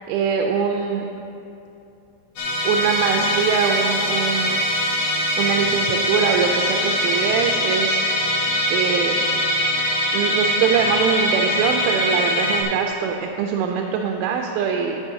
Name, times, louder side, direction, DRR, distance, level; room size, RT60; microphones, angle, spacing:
voice 1, 0.1-1.1 2.6-4.6 5.4-9.2 10.1-15.0, right 6 dB, 90° right, 2 dB, 3.0 m, -23 dB
Musical instrument, 2.4-12.6, left 1 dB, 70° left, 1.8 m, -22 dB
12.5 x 9.5 x 2.7 m, 2.8 s
omnidirectional pair, 5.5 m